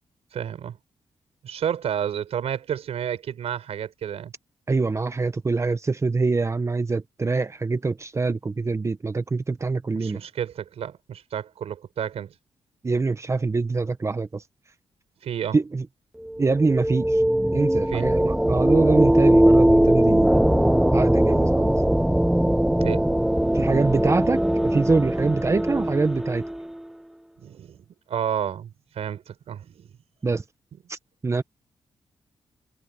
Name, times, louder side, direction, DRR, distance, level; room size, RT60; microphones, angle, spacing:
voice 1, 0.3-0.8 1.4-4.3 9.9-12.3 15.2-15.6 17.9-18.1 22.8-23.1 27.4-29.9, right 9 dB, 80° right, 6.3 m, -31 dB
voice 2, 4.7-10.2 12.8-14.4 15.5-15.9 16.4-17.2 17.5-21.7 23.5-24.4 24.7-26.4 30.2-30.4 30.9-31.4, right 3 dB, 30° right, 1.2 m, -24 dB
sound 1, 16.2-26.8, right 1 dB, 5° right, 0.4 m, -20 dB
cardioid pair, 105°, 10 cm